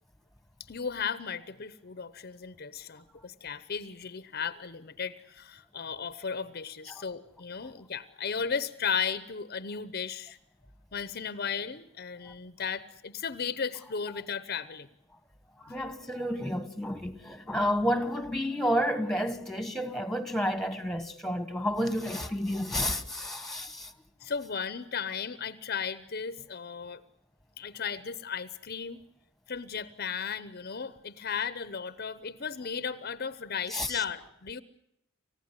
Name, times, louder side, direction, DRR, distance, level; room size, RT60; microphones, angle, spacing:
voice 1, 0.7-10.4 10.9-14.9 24.2-27.0 27.6-29.0 29.5-34.6, left 6 dB, 50° left, 0.8 m, -35 dB
voice 2, 15.6-23.9 33.7-34.0, equal, ahead, 1.6 m, -30 dB
29.0 x 15.5 x 9.7 m
head